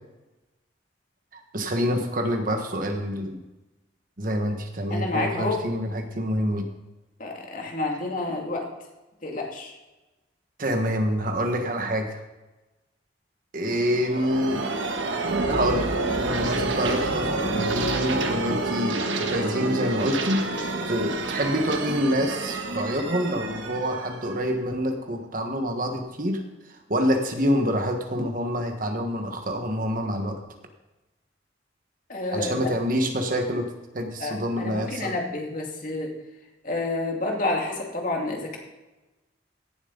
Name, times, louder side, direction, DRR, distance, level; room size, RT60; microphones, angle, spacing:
voice 1, 1.3-3.4 4.2-6.7 10.6-12.2 13.5-14.7 15.5-26.4 26.7-30.4 32.3-35.1, equal, 45° right, 5 dB, 1.5 m, -27 dB
voice 2, 4.9-5.6 7.2-8.7 9.2-9.7 32.1-32.7 34.2-36.1 36.6-38.6, left 2 dB, 45° left, 0 dB, 2.5 m, -29 dB
sound 1, 13.7-25.2, right 2 dB, 85° right, 1.5 m, -28 dB
16.5 x 7.5 x 4.0 m, 1.1 s
head